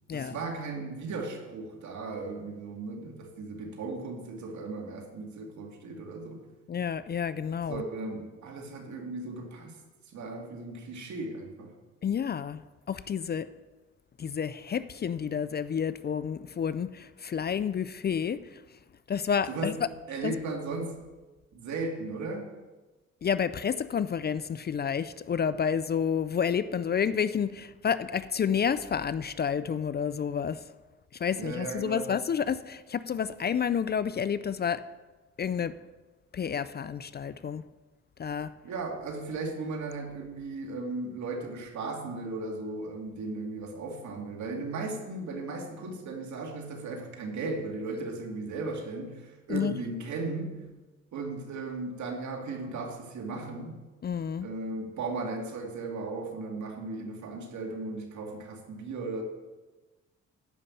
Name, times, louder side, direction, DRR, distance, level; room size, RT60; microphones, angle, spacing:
voice 1, 0.1-6.5 7.7-9.8 10.1-11.8 19.5-19.8 20.1-21.0 21.5-22.5 31.4-32.1 38.6-50.7 51.1-53.8 54.4-59.2, right 3 dB, 70° right, 2.3 m, -36 dB
voice 2, 6.7-7.8 12.0-12.6 12.9-13.5 14.2-18.6 19.1-19.7 20.2-20.3 23.2-30.7 31.1-34.9 35.4-35.8 36.3-37.7 38.2-38.6 49.5-49.7 54.0-54.5, left 7 dB, 35° left, 0.4 m, -30 dB
11.0 x 5.5 x 8.5 m
cardioid pair, 90°, 30 cm